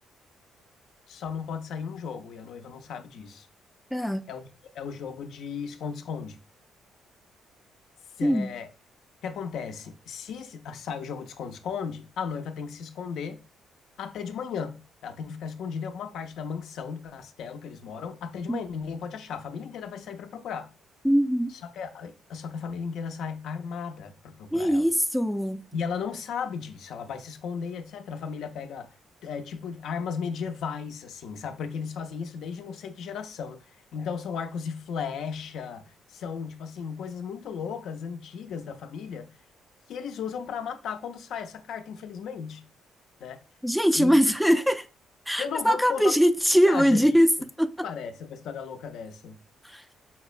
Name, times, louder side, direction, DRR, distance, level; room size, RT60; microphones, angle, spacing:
voice 1, 1.1-3.5 4.3-4.5 4.7-6.4 8.2-8.7 9.2-13.4 14.0-20.7 21.6-24.9 25.7-28.9 29.2-39.3 39.9-42.7 43.2-43.4 44.0-44.2 45.4-46.0 46.6-47.1 47.8-49.4, left 6 dB, 75° left, 0.4 m, -35 dB
voice 2, 3.9-4.2 8.2-8.5 18.5-18.6 21.0-21.5 24.5-25.6 43.6-44.9 45.3-47.3 47.6-47.7 49.6-49.8, equal, ahead, 0.3 m, -22 dB
5.3 x 2.1 x 2.4 m
cardioid pair, 90°, 0 cm